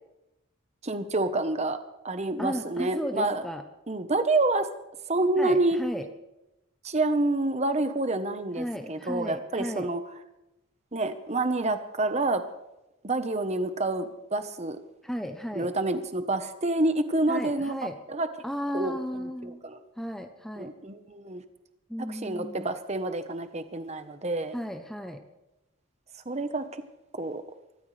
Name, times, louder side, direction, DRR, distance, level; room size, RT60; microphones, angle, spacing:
voice 1, 0.8-1.8 2.0-3.4 3.9-4.7 5.1-5.8 6.8-10.0 10.9-12.4 13.0-14.8 15.5-17.7 18.1-18.3 18.7-19.8 20.6-21.4 22.1-24.5 26.3-26.7 27.1-27.4, right 2 dB, 30° right, 9 dB, 1.0 m, -28 dB
voice 2, 2.4-3.6 5.4-6.1 8.6-9.9 15.0-15.7 17.3-18.0 18.4-19.6 20.0-20.7 21.9-22.7 24.5-25.2, equal, ahead, 6 dB, 0.7 m, -34 dB
23.5 x 14.0 x 3.3 m, 0.93 s
head